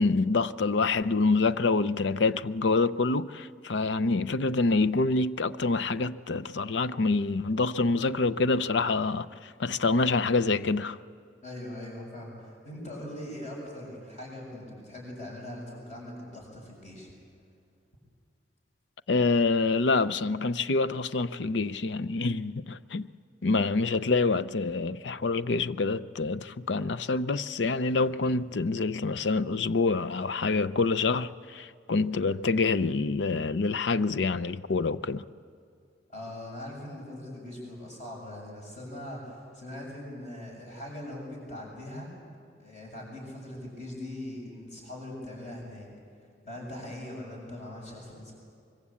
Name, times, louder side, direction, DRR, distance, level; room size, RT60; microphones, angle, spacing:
voice 1, 0.0-11.0 19.1-23.1 23.4-35.2, left 3 dB, 80° left, 0.6 m, -26 dB
voice 2, 11.4-17.1 36.1-42.1 42.6-45.9 46.5-48.3, left 1 dB, 40° left, 7.6 m, -41 dB
24.5 x 22.5 x 8.5 m
head